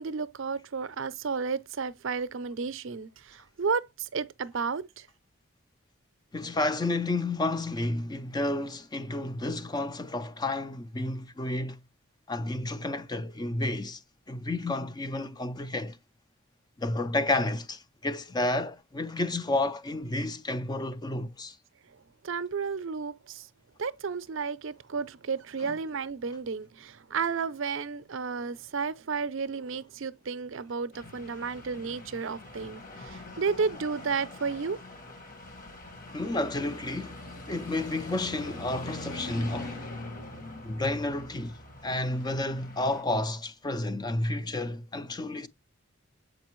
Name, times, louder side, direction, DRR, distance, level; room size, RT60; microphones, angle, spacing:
voice 1, 0.0-3.8 4.1-4.8 22.2-23.4 23.8-34.8, right 5 dB, 65° right, 0.5 m, -32 dB
voice 2, 6.3-11.8 12.3-14.0 14.3-16.0 16.8-21.6 25.6-25.8 36.1-37.2 37.5-39.8 40.6-41.6 41.8-45.5, left 2 dB, 20° left, 0.4 m, -31 dB
sound 1, 30.9-43.0, left 2 dB, 40° left, 1.5 m, -43 dB
7.4 x 5.0 x 3.0 m
head